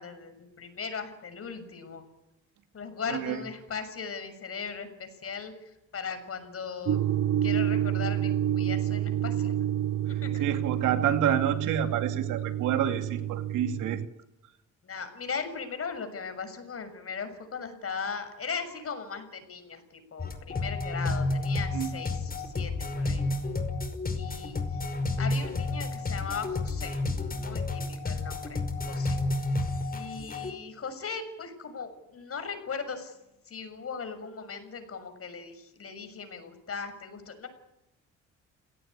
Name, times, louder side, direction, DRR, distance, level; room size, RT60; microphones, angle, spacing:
voice 1, 0.0-2.0 2.7-7.0 7.4-9.7 10.2-10.5 14.8-23.2 24.1-27.0 27.3-29.2 29.9-33.1 33.5-37.5, left 5 dB, 50° left, 9 dB, 6.8 m, -38 dB
voice 2, 3.1-3.4 10.1-14.0 21.7-21.9, right 9 dB, 90° right, 7 dB, 2.6 m, -28 dB
sound 1, 6.8-14.1, right 11 dB, 45° right, 0.9 m, -29 dB
sound 2, 20.2-30.5, left 2 dB, 30° left, 5.4 m, -31 dB
29.5 x 18.0 x 9.9 m, 0.91 s
cardioid pair, 90°, 30 cm